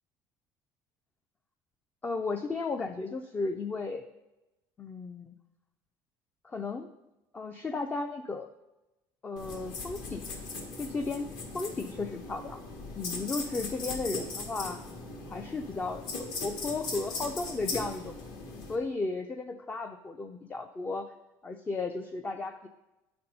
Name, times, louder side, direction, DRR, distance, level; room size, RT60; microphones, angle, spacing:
voice 1, 2.0-4.1 4.8-5.3 6.4-6.9 7.3-8.5 9.2-10.2 10.8-11.3 11.5-12.6 13.0-14.8 15.3-18.2 18.7-21.1 21.4-22.7, left 3 dB, 15° left, 6 dB, 0.4 m, -34 dB
sound 1, 9.4-18.7, left 3 dB, 65° left, 1.6 m, -39 dB
9.3 x 4.3 x 5.3 m, 1.0 s
cardioid pair, 145°, 9 cm